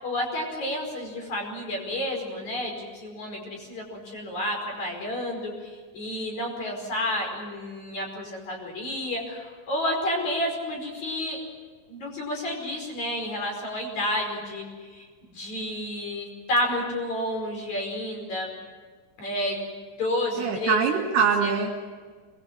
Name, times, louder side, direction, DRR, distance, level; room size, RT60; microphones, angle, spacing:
voice 1, 0.0-11.4 11.9-18.5 19.2-19.6 20.0-20.8 21.4-21.5, left 1 dB, 40° left, 1 dB, 6.1 m, -30 dB
voice 2, 20.4-21.7, right 6 dB, 60° right, -3 dB, 3.9 m, -23 dB
24.5 x 21.0 x 7.4 m, 1.5 s
omnidirectional pair, 5.5 m